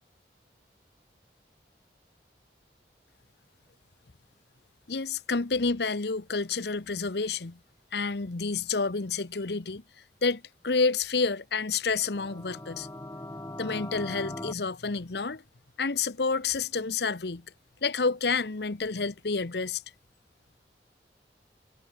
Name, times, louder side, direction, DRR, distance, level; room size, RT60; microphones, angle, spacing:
voice 1, 4.9-7.6 7.9-9.8 10.2-12.9 13.6-15.4 15.8-17.4 17.8-19.8, left 4 dB, 70° left, 1.0 m, -29 dB
sound 1, 12.0-14.5, left 1 dB, 15° left, 1.0 m, -40 dB
head